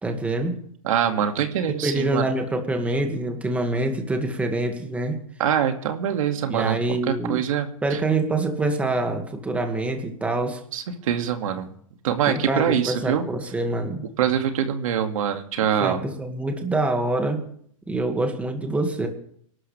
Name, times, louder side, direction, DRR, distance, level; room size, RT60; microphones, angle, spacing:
voice 1, 0.0-0.5 1.8-5.1 6.5-7.4 7.8-10.6 12.3-14.0 15.8-17.4 17.9-19.1, right 2 dB, 5° right, 4 dB, 2.1 m, -25 dB
voice 2, 0.8-2.3 5.4-6.8 7.1-8.0 10.7-11.7 12.0-13.2 14.2-16.0, right 9 dB, 70° right, 5 dB, 2.3 m, -24 dB
24.0 x 12.5 x 3.5 m, 0.62 s
supercardioid pair, 150°, 18 cm